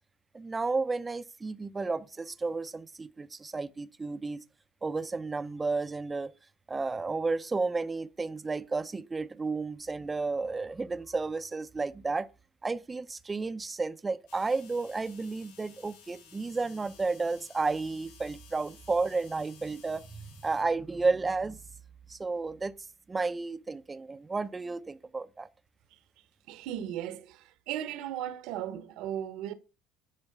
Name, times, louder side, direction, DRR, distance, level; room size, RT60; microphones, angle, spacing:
voice 1, 0.3-4.4 4.8-6.3 6.7-12.3 12.6-21.6 22.1-22.7 23.1-25.5, right 3 dB, 15° right, 0.6 m, -32 dB
sound 1, 14.3-20.6, left 7 dB, 85° left, 3.7 m, -56 dB
voice 2, 26.5-29.5, right 10 dB, 65° right, 1.2 m, -36 dB
10.5 x 4.5 x 6.8 m
cardioid pair, 140°, 0 cm